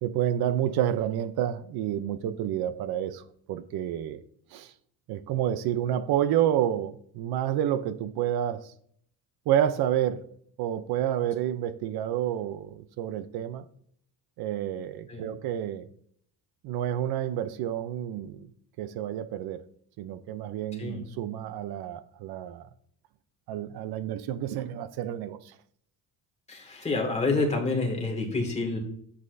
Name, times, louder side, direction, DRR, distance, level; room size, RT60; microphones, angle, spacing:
voice 1, 0.0-4.2 4.5-4.7 5.1-8.7 9.5-10.2 10.6-13.6 14.4-15.9 16.6-18.5 18.8-19.6 20.0-22.7 23.5-25.5, right 11 dB, 70° right, 0.7 m, -29 dB
voice 2, 26.5-28.8, left 3 dB, 15° left, 2.1 m, -28 dB
9.5 x 8.1 x 2.7 m
cardioid pair, 130°, 39 cm